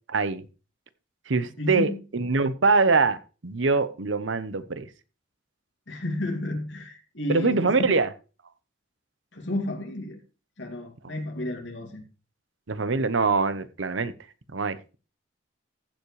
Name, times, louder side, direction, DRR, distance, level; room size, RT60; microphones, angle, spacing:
voice 1, 0.1-0.4 1.3-3.2 3.4-4.9 7.3-8.1 11.0-11.1 12.7-14.1 14.5-15.0, right 4 dB, 85° right, 14 dB, 0.9 m, -24 dB
voice 2, 1.6-2.0 5.9-8.0 9.3-10.2 10.6-12.0, left 1 dB, 75° left, 3 dB, 2.4 m, -32 dB
15.0 x 7.2 x 3.2 m, 0.33 s
head